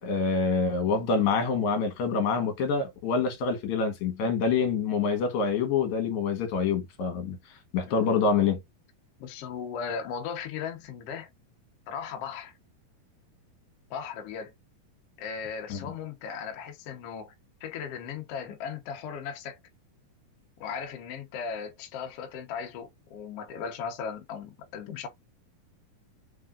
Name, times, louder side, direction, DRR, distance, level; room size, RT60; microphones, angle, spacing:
voice 1, 0.0-7.4 7.7-8.6 15.7-15.9, left 5 dB, 65° left, 2.3 m, -26 dB
voice 2, 7.8-8.3 9.2-11.3 11.9-12.5 13.9-14.5 15.2-17.3 17.6-19.6 20.6-25.1, left 6 dB, 85° left, 1.3 m, -37 dB
5.6 x 3.5 x 2.4 m
omnidirectional pair, 4.1 m